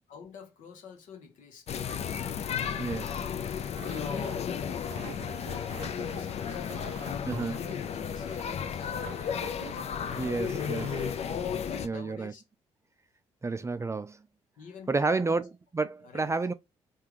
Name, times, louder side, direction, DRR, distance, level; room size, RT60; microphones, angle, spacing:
voice 1, 0.1-1.8 3.8-5.2 5.7-11.2 11.6-12.4 13.6-13.7 14.6-15.4 16.0-16.3, left 5 dB, 65° left, 1.0 m, -49 dB
sound 1, 1.7-11.9, left 8 dB, 50° left, 0.4 m, -33 dB
voice 2, 2.8-3.2 7.3-7.6 10.2-10.9 11.8-12.3 13.4-14.2 14.9-16.5, right 3 dB, 20° right, 0.4 m, -30 dB
sound 2, 3.7-11.7, right 10 dB, 85° right, 0.4 m, -48 dB
3.5 x 2.4 x 2.9 m
hypercardioid pair, 45°, 14 cm